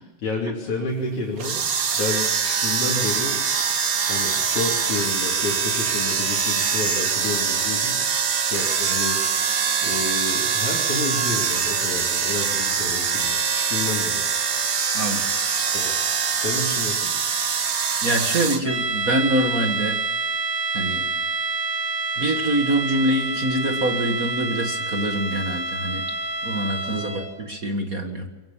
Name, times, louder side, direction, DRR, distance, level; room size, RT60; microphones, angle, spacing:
voice 1, 0.0-1.6 1.9-3.4 4.1-8.0 8.4-9.2 9.8-14.2 15.7-15.9 16.3-17.1 26.9-27.2, left 3 dB, 70° left, -3 dB, 4.2 m, -30 dB
sound 1, 1.4-18.6, right 6 dB, 70° right, 0.8 m, -23 dB
voice 2, 14.9-15.3 18.0-20.0 20.7-21.1 22.2-26.1 26.4-28.3, right 1 dB, 35° right, 4 dB, 1.5 m, -25 dB
sound 2, 18.6-27.4, right 3 dB, 5° right, 3.3 m, -27 dB
23.0 x 16.0 x 7.2 m, 1.3 s
omnidirectional pair, 3.5 m